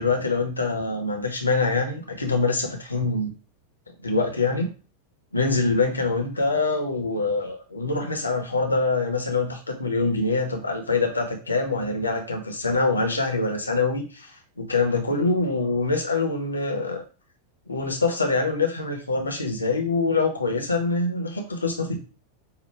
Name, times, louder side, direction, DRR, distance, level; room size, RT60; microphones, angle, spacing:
voice 1, 0.0-3.3 4.0-4.7 5.3-14.3 14.6-17.0 17.7-22.0, left 3 dB, 80° left, 3 dB, 1.2 m, -24 dB
5.8 x 2.6 x 3.4 m, 0.35 s
figure-of-eight pair, 90°, 0 cm